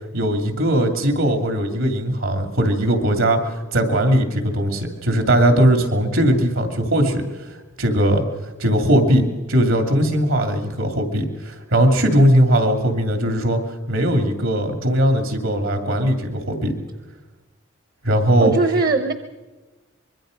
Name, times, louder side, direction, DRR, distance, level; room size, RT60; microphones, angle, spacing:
voice 1, 0.1-7.3 7.8-8.2 8.6-13.6 13.9-16.8 18.0-18.5, right 1 dB, 80° right, 5 dB, 2.6 m, -19 dB
voice 2, 18.4-19.1, right 3 dB, 45° right, 10 dB, 0.8 m, -19 dB
24.5 x 22.0 x 5.2 m, 1.2 s
head